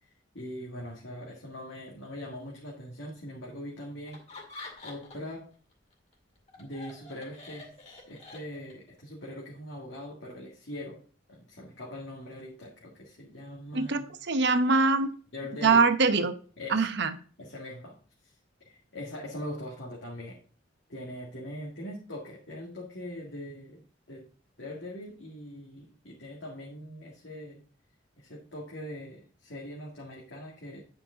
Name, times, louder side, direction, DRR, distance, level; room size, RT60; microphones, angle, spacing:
voice 1, 0.3-4.2 4.8-5.5 6.6-11.0 11.3-14.1 15.3-15.8 16.6-16.9 17.4-17.9 18.2-18.3 18.6-20.4 20.9-23.8 24.1-24.3 24.6-27.6 28.2-30.8, left 1 dB, 65° left, -4 dB, 2.0 m, -41 dB
Laughter, 4.1-5.4 5.7-8.9, left 2 dB, 35° left, 2.2 m, -47 dB
voice 2, 13.7-15.1 15.6-16.3 16.7-17.1, right 4 dB, 60° right, 9 dB, 0.9 m, -23 dB
9.0 x 5.4 x 3.9 m, 0.40 s
head